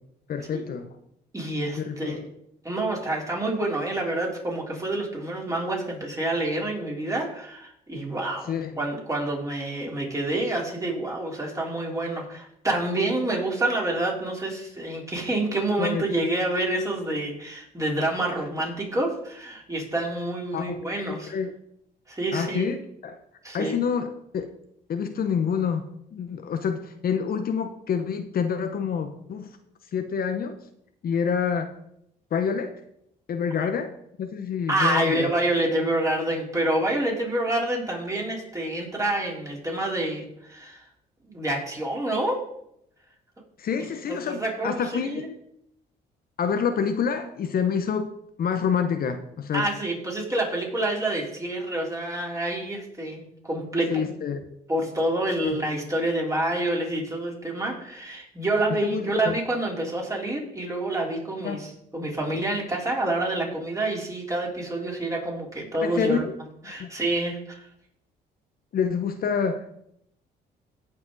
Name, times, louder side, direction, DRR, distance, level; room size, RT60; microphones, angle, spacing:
voice 1, 0.3-1.0 1.8-2.2 8.5-8.8 15.8-16.0 20.5-21.5 22.3-23.2 23.5-24.5 24.9-29.5 29.9-30.6 31.0-31.8 32.3-32.7 33.3-33.9 34.2-35.3 43.6-45.3 46.4-48.1 48.4-49.7 53.9-54.4 55.4-55.6 58.7-59.4 61.4-61.6 65.8-66.3 66.8-66.9 68.7-69.6, left 6 dB, 55° left, 8 dB, 0.9 m, -27 dB
voice 2, 1.3-2.2 2.6-21.3 22.1-22.7 23.4-23.8 33.6-33.7 34.7-40.8 41.3-42.4 43.8-45.3 49.5-54.0 54.7-66.2 66.7-67.7, right 1 dB, 20° right, -2 dB, 3.8 m, -28 dB
17.0 x 5.8 x 4.0 m, 0.75 s
cardioid pair, 90°, 18 cm